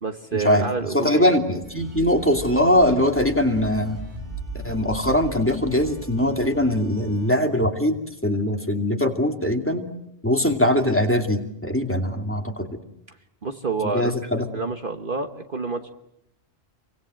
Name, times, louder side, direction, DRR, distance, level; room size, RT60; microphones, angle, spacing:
voice 1, 0.0-1.3 13.4-14.1 14.5-15.9, right 4 dB, 45° right, 6 dB, 1.4 m, -28 dB
voice 2, 0.9-4.0 4.6-9.8 10.2-12.7 13.9-14.5, left 1 dB, 10° left, 3 dB, 2.6 m, -21 dB
sound 1, 1.6-7.4, right 2 dB, 60° right, 6.0 m, -37 dB
29.5 x 24.5 x 7.8 m, 0.78 s
omnidirectional pair, 1.3 m